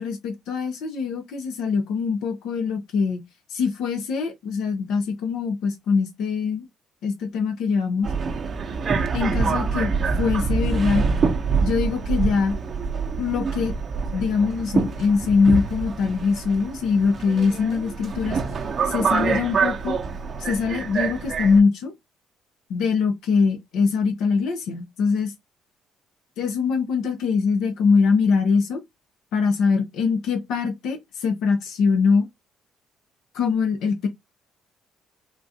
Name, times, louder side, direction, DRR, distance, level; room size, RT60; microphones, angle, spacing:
voice 1, 0.0-3.2 3.5-6.7 7.0-8.1 9.1-11.1 11.6-12.6 13.2-13.7 14.1-18.4 18.8-20.0 20.4-21.9 22.7-25.3 26.4-28.8 29.3-32.3 33.3-34.1, left 5 dB, 80° left, 0.8 m, -23 dB
Subway metro underground, 8.0-21.6, right 5 dB, 40° right, 0.6 m, -26 dB
3.8 x 2.4 x 2.7 m
cardioid pair, 105°, 0 cm